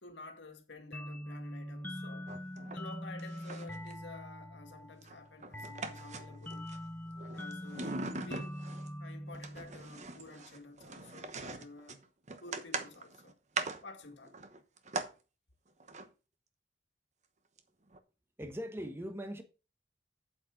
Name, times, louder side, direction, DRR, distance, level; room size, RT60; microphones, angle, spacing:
voice 1, 0.0-2.3 2.7-6.7 7.2-8.5 9.0-12.0 12.4-13.4 13.8-14.4, left 2 dB, 85° left, 1.9 m, -51 dB
sound 1, 0.9-10.3, equal, 10° left, 0.7 m, -44 dB
sound 2, 2.3-2.9 3.2-3.9 5.0-6.8 7.2-8.9 9.3-15.1 15.8-16.1 17.6-17.7 17.9-18.0, right 3 dB, 40° right, 1.1 m, -41 dB
voice 2, 18.4-19.4, equal, 15° right, 1.0 m, -40 dB
8.4 x 8.4 x 3.9 m
head